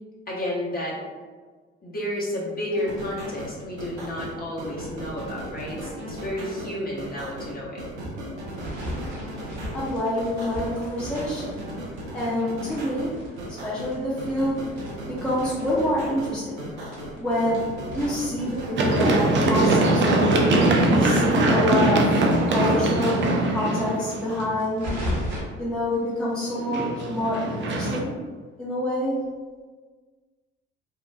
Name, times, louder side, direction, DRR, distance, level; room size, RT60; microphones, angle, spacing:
voice 1, 0.3-1.0 1.8-7.8, left 1 dB, 25° left, -5 dB, 0.9 m, -31 dB
sound 1, 2.7-21.4, equal, 85° right, 0.5 m, -37 dB
sound 2, 8.5-12.3 12.7-15.7 16.0-16.1 16.3-16.4 16.8-19.2 19.5-22.5 22.8-22.9 23.2-23.3 23.7-25.4, equal, 55° right, 1.0 m, -36 dB
voice 2, 9.7-17.6 17.9-20.7 21.0-22.1 22.5-23.2 23.5-24.9 25.6-28.2 28.6-29.2, left 1 dB, 5° left, -7 dB, 0.7 m, -27 dB
Run, 18.8-24.6 26.5-28.0, right 2 dB, 35° right, 0.5 m, -21 dB
2.8 x 2.1 x 2.3 m, 1.4 s
hypercardioid pair, 55°, 33 cm